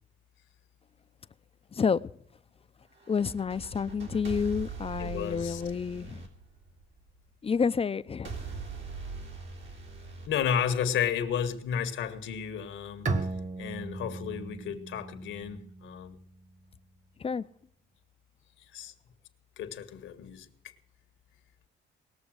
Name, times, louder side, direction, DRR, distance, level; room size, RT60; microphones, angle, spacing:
sound 1, 3.0-7.1 8.3-11.1, right 4 dB, 75° right, 3.5 m, -41 dB
voice 1, 3.1-6.2 7.4-8.3 17.2-17.4, left 6 dB, 30° left, 0.5 m, -29 dB
voice 2, 5.0-5.6 10.3-13.1 13.6-16.2 18.7-18.9 19.6-20.5, left 8 dB, 80° left, 1.5 m, -32 dB
Bowed string instrument, 13.1-16.6, right 3 dB, 35° right, 1.5 m, -36 dB
19.5 x 7.0 x 6.4 m
cardioid pair, 90°, 20 cm